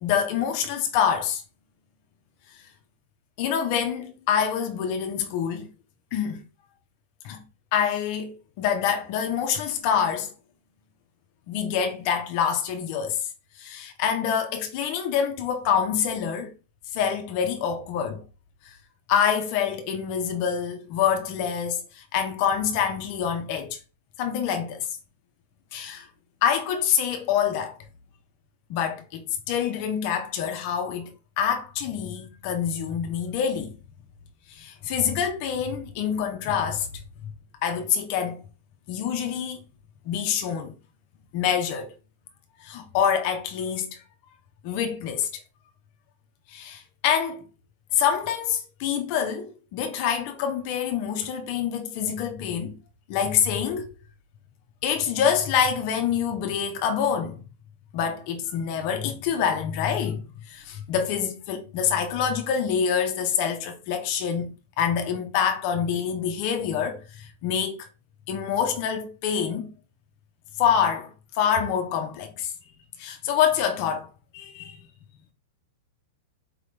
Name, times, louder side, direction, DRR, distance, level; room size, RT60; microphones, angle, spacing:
voice 1, 0.0-1.4 3.4-5.7 6.1-6.4 7.2-7.4 7.7-10.3 11.5-13.3 13.6-16.5 16.9-18.2 18.6-18.8 19.1-23.8 24.2-25.0 25.7-26.1 26.4-27.8 28.7-33.7 34.5-36.9 37.6-38.4 38.9-39.6 40.0-40.7 41.3-41.9 42.6-44.0 44.6-45.3 46.5-47.4 47.9-52.8 53.1-53.9 54.8-57.4 57.9-67.9 68.3-69.7 70.6-72.5 73.0-74.1 74.3-74.8, left 8 dB, 45° left, 0.8 m, -26 dB
4.4 x 3.7 x 3.3 m
supercardioid pair, 150°, 0 cm